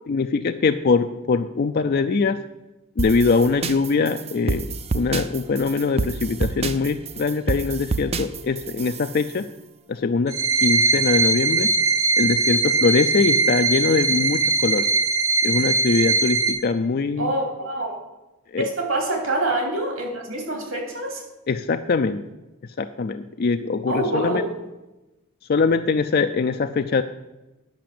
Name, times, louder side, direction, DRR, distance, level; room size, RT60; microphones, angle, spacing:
voice 1, 0.1-2.4 3.0-4.7 4.9-9.5 9.9-11.7 12.2-14.9 15.4-17.3 18.5-18.7 21.5-22.2 22.6-24.4 25.5-27.0, left 4 dB, 45° left, 7 dB, 0.4 m, -22 dB
sound 1, 3.0-9.3, right 3 dB, 30° right, 0.5 m, -28 dB
sound 2, 10.3-16.5, right 3 dB, 85° right, 1.5 m, -21 dB
voice 2, 17.2-18.0 18.6-21.2 23.9-24.4, right 2 dB, 60° right, 2 dB, 3.1 m, -26 dB
10.5 x 6.0 x 7.6 m, 1.0 s
head